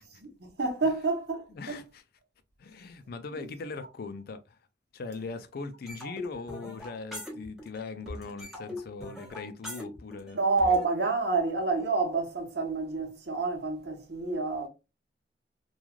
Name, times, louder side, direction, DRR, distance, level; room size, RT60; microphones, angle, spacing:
voice 1, 0.2-1.8 10.3-14.7, right 3 dB, 65° right, 0.9 m, -28 dB
voice 2, 1.5-2.0 2.6-4.6 4.9-10.4, left 4 dB, 55° left, 0.4 m, -40 dB
sound 1, 5.9-10.8, left 1 dB, ahead, 0.9 m, -41 dB
3.1 x 2.3 x 2.3 m
head